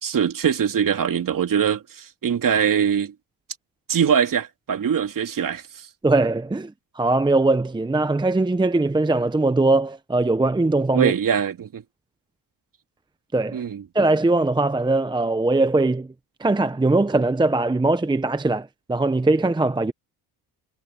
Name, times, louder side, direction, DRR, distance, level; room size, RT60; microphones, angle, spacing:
voice 1, 0.0-3.1 3.9-5.9 10.9-11.8 13.5-13.8, right 8 dB, 45° right, 3.1 m, -22 dB
voice 2, 6.0-11.1 13.3-13.6 13.9-16.1 16.4-19.9, right 2 dB, 10° right, 0.8 m, -21 dB
cardioid pair, 90°, 44 cm